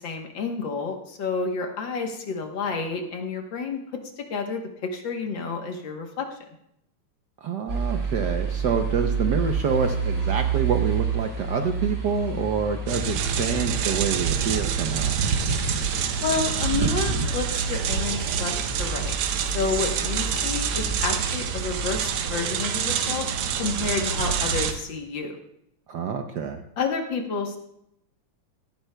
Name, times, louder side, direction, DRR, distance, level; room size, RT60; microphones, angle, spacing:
voice 1, 0.0-6.3 16.2-18.5 18.8-19.1 19.5-23.3 23.6-25.4 26.8-27.6, left 4 dB, 60° left, 3 dB, 1.8 m, -30 dB
voice 2, 7.4-15.2 25.9-26.6, right 6 dB, 65° right, 5 dB, 1.1 m, -27 dB
sound 1, 7.7-22.0, right 5 dB, 30° right, 2.5 m, -30 dB
sound 2, 12.9-24.7, right 7 dB, 85° right, 1.8 m, -27 dB
17.0 x 14.5 x 2.2 m, 0.78 s
omnidirectional pair, 2.4 m